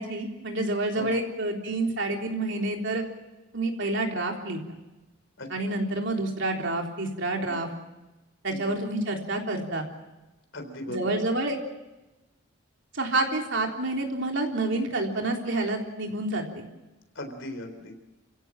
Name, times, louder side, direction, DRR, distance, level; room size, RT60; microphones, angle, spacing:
voice 1, 0.0-3.0 3.5-4.6 5.5-7.7 8.4-9.8 10.9-11.6 12.9-16.6, right 2 dB, 60° right, 2 dB, 3.6 m, -28 dB
voice 2, 10.5-11.2 17.2-18.0, left 1 dB, 60° left, 6 dB, 3.9 m, -38 dB
28.5 x 16.5 x 7.6 m, 1.1 s
head